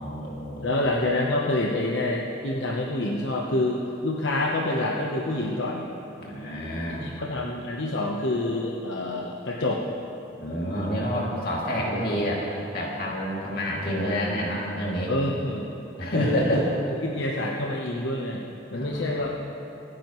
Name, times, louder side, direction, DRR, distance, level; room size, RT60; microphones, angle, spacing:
voice 1, 0.0-0.8 6.2-7.1 10.4-15.1 16.0-16.6 18.7-19.1, equal, 50° left, -4 dB, 2.6 m, -28 dB
voice 2, 0.6-5.9 7.0-9.8 15.1-15.7 16.1-16.6 17.0-19.3, left 1 dB, 70° left, -2 dB, 1.0 m, -27 dB
25.5 x 10.0 x 3.1 m, 3.0 s
head